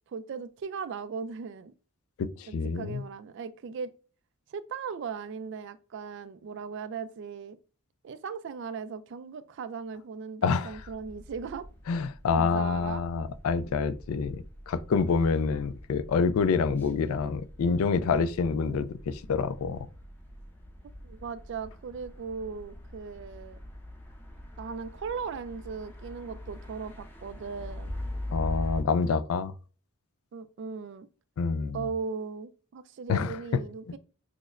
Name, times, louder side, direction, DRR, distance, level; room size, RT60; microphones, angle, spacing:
voice 1, 0.1-1.7 2.5-3.9 4.5-7.6 8.0-11.7 12.3-13.0 21.0-23.6 24.6-27.9 30.3-31.1 31.7-34.0, right 5 dB, 55° right, 0.3 m, -38 dB
voice 2, 2.2-3.0 10.4-10.7 11.9-19.9 28.3-29.5 31.4-31.8 33.1-33.4, left 5 dB, 70° left, 0.3 m, -27 dB
sound 1, 10.6-28.8, left 1 dB, 10° left, 0.6 m, -43 dB
6.0 x 2.1 x 2.4 m
head